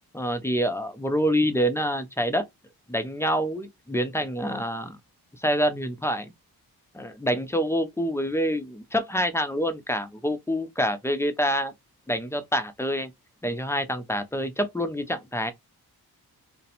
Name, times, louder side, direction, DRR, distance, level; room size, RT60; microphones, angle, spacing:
voice 1, 0.1-2.4 2.9-5.0 5.4-6.3 6.9-11.7 12.1-13.1 13.4-15.5, equal, 10° left, 0.3 m, -26 dB
2.4 x 2.1 x 2.7 m
wide cardioid pair, 105°, 38 cm